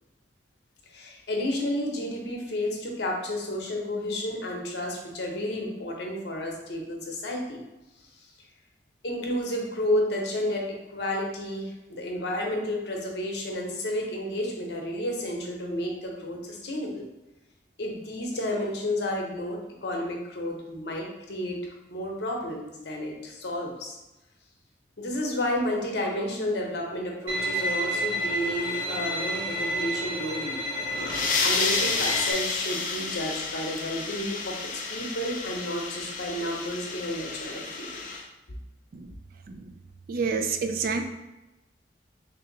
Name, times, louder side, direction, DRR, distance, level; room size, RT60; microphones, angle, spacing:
voice 1, 0.9-7.6 8.1-8.3 9.0-17.0 17.8-21.6 21.9-24.0 25.0-30.6 31.4-34.6 34.9-38.0, left 1 dB, 65° left, 0 dB, 0.8 m, -31 dB
Bowed string instrument, 27.3-32.3, equal, 75° right, 0.7 m, -30 dB
sound 1, 30.8-38.2, left 4 dB, 45° left, 0.4 m, -31 dB
voice 2, 40.1-41.1, right 5 dB, 50° right, 6 dB, 0.3 m, -28 dB
3.3 x 2.8 x 3.8 m, 1.0 s
head